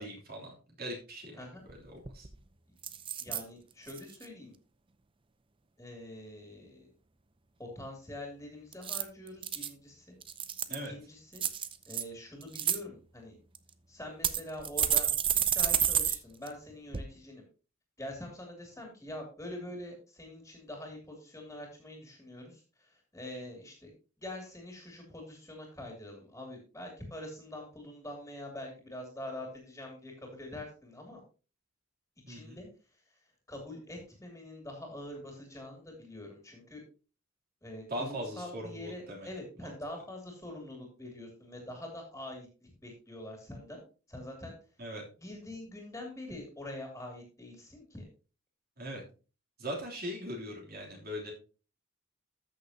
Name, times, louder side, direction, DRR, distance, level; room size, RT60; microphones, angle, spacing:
voice 1, 0.0-1.3 1.7-2.3 10.7-10.9 32.3-32.6 37.9-39.3 39.6-39.7 44.8-45.0 48.8-49.0 49.6-51.3, equal, 50° right, -1 dB, 3.2 m, -40 dB
sound 1, 1.7-1.8 2.0-2.4 2.8-3.4 3.9-4.2 8.7-9.7 10.2-10.9 11.4-12.0 12.4-12.8 13.5-13.6 14.2-16.2 16.5-16.6 16.9-17.0, right 9 dB, 25° right, 0.6 m, -30 dB
voice 2, 3.2-4.5 5.8-6.9 7.6-10.1 10.7-11.4 11.9-13.4 13.9-15.1 15.3-17.4 18.0-23.9 24.2-31.2 32.3-33.2 33.5-36.8 37.6-43.8 44.1-44.6 45.2-48.1, left 1 dB, 10° left, 1 dB, 2.7 m, -45 dB
14.0 x 6.6 x 2.9 m, 0.34 s
head